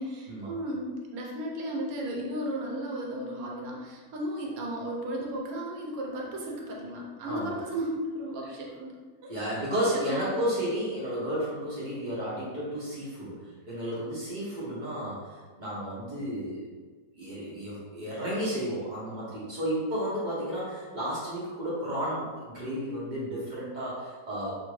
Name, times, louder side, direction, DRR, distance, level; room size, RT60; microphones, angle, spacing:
voice 1, 0.0-8.9 9.2-9.6 9.9-10.4, right 1 dB, 70° right, -2 dB, 1.1 m, -35 dB
voice 2, 9.3-16.7 17.2-24.5, equal, 40° right, -7 dB, 0.7 m, -32 dB
2.8 x 2.5 x 3.0 m, 1.4 s
omnidirectional pair, 1.6 m